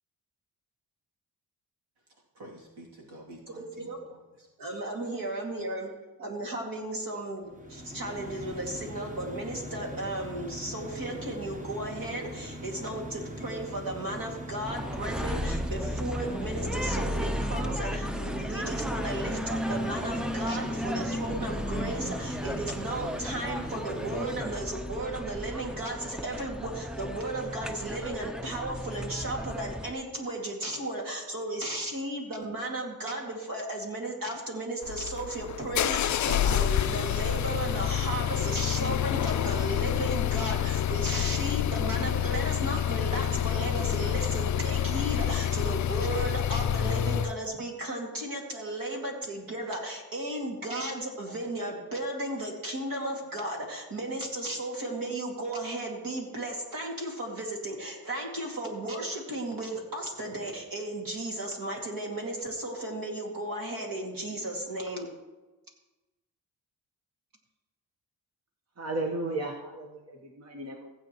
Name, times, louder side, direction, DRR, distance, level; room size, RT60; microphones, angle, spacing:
voice 1, 2.3-4.5 4.9-6.0, right 1 dB, 85° right, -4 dB, 2.9 m, -51 dB
voice 2, 3.5-4.0 4.6-5.9 6.2-65.1, right 1 dB, 60° right, 0 dB, 2.4 m, -35 dB
sound 1, 7.4-24.4, equal, 20° right, 1.1 m, -41 dB
sound 2, 14.6-29.9, equal, ahead, 0.5 m, -34 dB
sound 3, 34.8-47.3, left 10 dB, 50° left, 0.4 m, -28 dB
voice 3, 68.8-70.9, right 2 dB, 40° right, 1 dB, 1.3 m, -34 dB
16.0 x 8.5 x 3.1 m, 1.1 s
cardioid pair, 75°, 39 cm